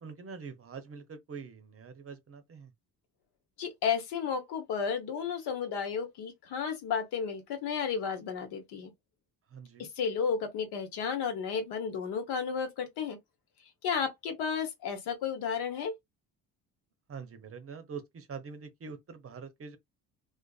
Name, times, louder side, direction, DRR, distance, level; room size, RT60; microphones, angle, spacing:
voice 1, 0.0-2.7 9.5-9.9 17.1-19.8, right 5 dB, 35° right, 0.7 m, -44 dB
voice 2, 3.6-8.9 9.8-13.2 13.8-15.9, left 6 dB, 75° left, 1.1 m, -33 dB
2.5 x 2.4 x 2.3 m
supercardioid pair, 85°, 39 cm